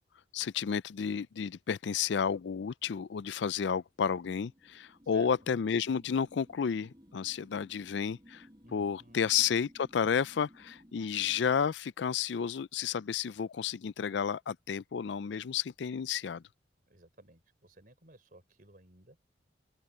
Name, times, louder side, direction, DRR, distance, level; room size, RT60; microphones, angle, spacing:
voice 1, 0.3-8.5 8.7-16.4, left 7 dB, 70° left, 0.4 m, -31 dB
sound 1, 4.1-11.6, equal, 20° right, 4.6 m, -59 dB
voice 2, 8.6-9.3 16.9-19.2, right 2 dB, 50° right, 4.1 m, -57 dB
open air
head